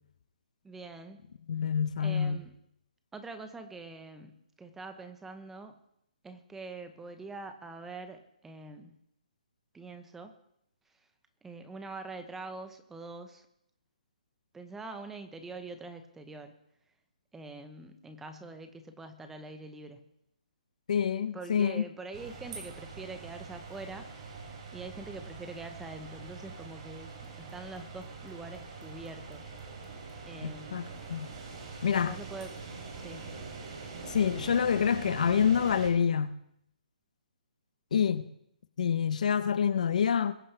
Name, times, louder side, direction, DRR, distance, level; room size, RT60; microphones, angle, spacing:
voice 1, 0.6-1.2 2.0-2.5 3.1-5.8 6.2-9.0 9.7-10.3 11.4-13.5 14.5-16.6 17.3-20.0 21.3-24.1 24.7-29.5 30.3-31.0 31.9-32.5 33.0-33.4, right 3 dB, 5° right, 0.9 m, -44 dB
voice 2, 1.5-2.4 20.9-21.9 30.4-31.3 31.8-32.2 34.1-36.4 37.9-38.3 38.8-40.3, left 7 dB, 60° left, 0.9 m, -27 dB
sound 1, 22.1-35.9, right 4 dB, 35° right, 3.3 m, -44 dB
22.0 x 9.9 x 3.4 m
hypercardioid pair, 155°, 4 cm